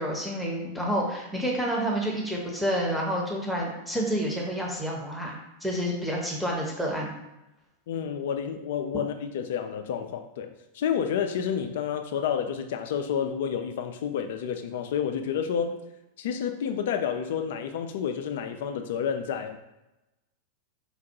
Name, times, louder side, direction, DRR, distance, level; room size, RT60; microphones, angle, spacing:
voice 1, 0.0-7.1, equal, ahead, -3 dB, 0.8 m, -29 dB
voice 2, 7.9-15.8 16.2-19.6, left 8 dB, 55° left, 7 dB, 0.3 m, -30 dB
4.4 x 2.2 x 2.9 m, 0.97 s
figure-of-eight pair, 90°, 0 cm